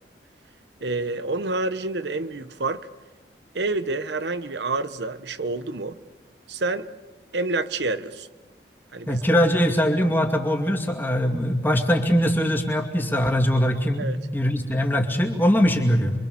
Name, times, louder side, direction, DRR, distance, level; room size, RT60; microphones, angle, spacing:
voice 1, 0.8-2.9 3.5-6.0 6.5-6.9 7.3-8.3 8.9-9.2 14.0-14.2, right 3 dB, 75° right, 1.0 m, -28 dB
voice 2, 9.1-14.0 14.3-16.1, equal, 10° left, 2.4 m, -21 dB
28.0 x 24.0 x 6.9 m
head